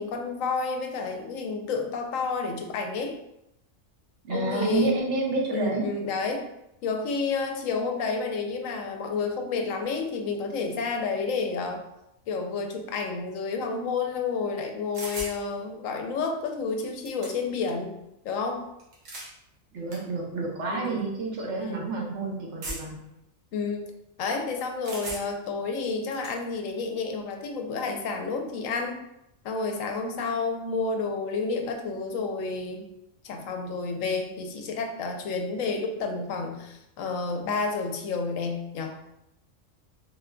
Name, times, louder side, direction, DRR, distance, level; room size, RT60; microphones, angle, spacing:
voice 1, 0.0-3.1 4.3-4.9 5.5-6.4 6.8-11.8 12.3-17.9 18.2-18.6 20.7-21.0 21.6-21.9 23.5-23.9 24.2-29.0 29.4-32.8 33.2-38.9, left 4 dB, 85° left, 4 dB, 1.0 m, -30 dB
voice 2, 4.2-5.9 19.7-23.0, right 3 dB, 65° right, -1 dB, 1.1 m, -29 dB
sound 1, 14.9-15.4 16.5-16.6 16.8-17.6 18.8-19.3 19.9-20.0 20.8-21.0 22.6-23.0 24.8-25.5 25.8-26.4, right 1 dB, 85° right, 1.3 m, -38 dB
3.9 x 3.7 x 2.2 m, 0.84 s
omnidirectional pair, 1.3 m